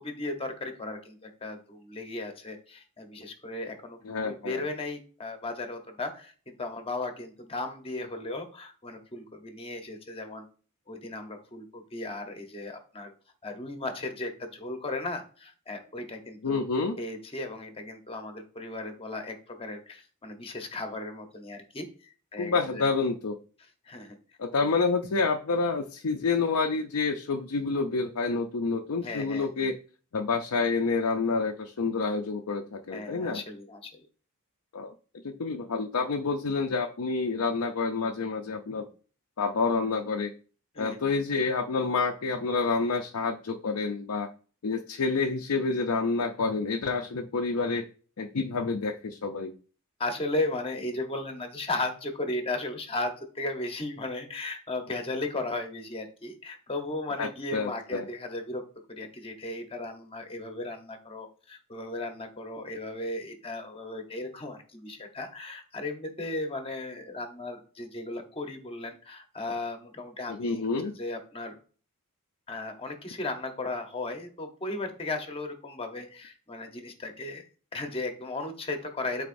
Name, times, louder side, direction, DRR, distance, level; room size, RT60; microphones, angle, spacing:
voice 1, 0.0-10.4 10.9-13.1 13.4-16.6 17.0-22.9 23.9-24.2 29.0-29.7 32.9-34.0 40.7-41.0 50.0-58.6 58.9-71.6 72.5-77.4 77.7-79.3, left 2 dB, 25° left, 5 dB, 1.0 m, -36 dB
voice 2, 4.0-4.6 16.4-17.0 22.4-23.4 24.4-29.8 30.1-33.4 34.7-34.9 35.2-38.9 39.4-40.3 40.8-44.3 44.6-47.9 48.2-49.5 57.2-58.1 70.3-70.9, left 4 dB, 70° left, 3 dB, 0.6 m, -28 dB
11.5 x 4.2 x 2.6 m, 0.41 s
head